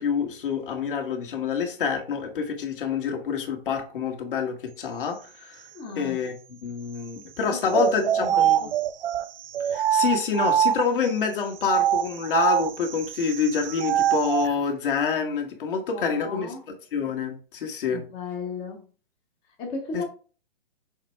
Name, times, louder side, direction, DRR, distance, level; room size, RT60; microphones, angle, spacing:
voice 1, 0.0-5.6 6.0-8.6 9.7-16.5 16.9-18.0, left 6 dB, 55° left, 1.8 m, -27 dB
voice 2, 5.7-6.2 7.5-8.8 15.9-16.6 17.9-18.8 19.6-20.0, left 3 dB, 15° left, 0.7 m, -35 dB
sound 1, 7.7-11.1 11.6-14.5, right 10 dB, 65° right, 0.6 m, -24 dB
6.4 x 3.3 x 4.7 m
hypercardioid pair, 155°, 31 cm